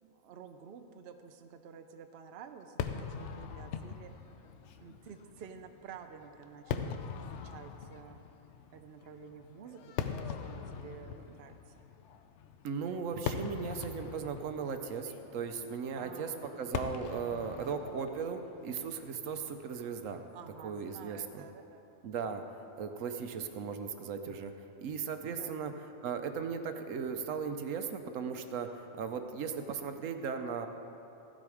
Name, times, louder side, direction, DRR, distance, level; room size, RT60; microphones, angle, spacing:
voice 1, 0.0-4.1 4.8-8.2 8.7-11.7 16.0-17.3 20.3-22.3 25.3-25.8, right 7 dB, 55° right, 7 dB, 0.8 m, -51 dB
Fireworks, 2.8-20.1, left 7 dB, 65° left, 0.9 m, -42 dB
voice 2, 12.6-20.2 20.6-21.4 22.0-22.4 22.8-24.5 24.8-25.7 26.0-28.7 29.0-30.7, right 6 dB, 75° right, 7 dB, 1.1 m, -37 dB
15.0 x 7.6 x 4.9 m, 3.0 s
omnidirectional pair, 1.4 m